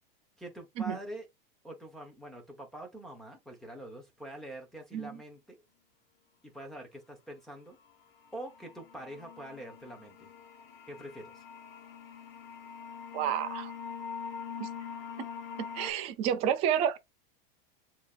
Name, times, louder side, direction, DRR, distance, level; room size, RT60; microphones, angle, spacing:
voice 1, 0.4-1.3 1.6-5.6 6.4-7.8 8.3-10.3 10.9-11.4, right 1 dB, ahead, 0.9 m, -45 dB
sound 1, 7.9-8.0 8.2-15.9, left 6 dB, 75° left, 1.2 m, -44 dB
voice 2, 13.1-13.7 14.6-14.7 15.7-17.0, right 9 dB, 20° right, 0.4 m, -30 dB
7.0 x 2.8 x 2.4 m
supercardioid pair, 165°, 30 cm